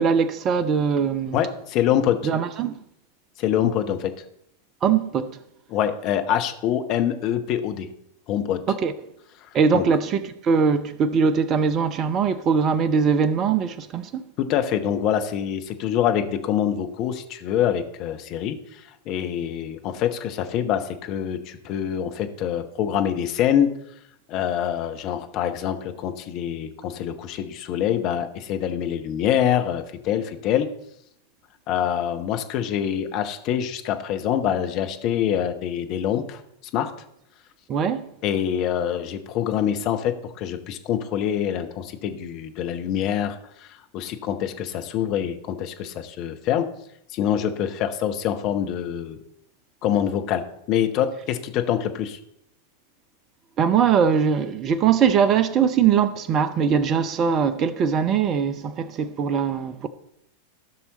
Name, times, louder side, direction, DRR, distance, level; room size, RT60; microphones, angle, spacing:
voice 1, 0.0-1.4 2.2-2.8 4.8-5.4 8.7-8.9 9.5-14.2 37.7-38.1 53.6-59.9, right 6 dB, 30° right, 0.7 m, -21 dB
voice 2, 1.3-2.2 3.4-4.1 5.7-7.9 8.3-8.6 9.7-9.8 14.4-18.8 19.1-23.7 24.3-30.7 31.7-36.4 36.7-36.9 38.2-43.7 43.9-46.7 47.1-49.2 49.8-52.2, left 10 dB, 40° left, 1.0 m, -25 dB
15.0 x 6.1 x 4.0 m
figure-of-eight pair, 90°, 0 cm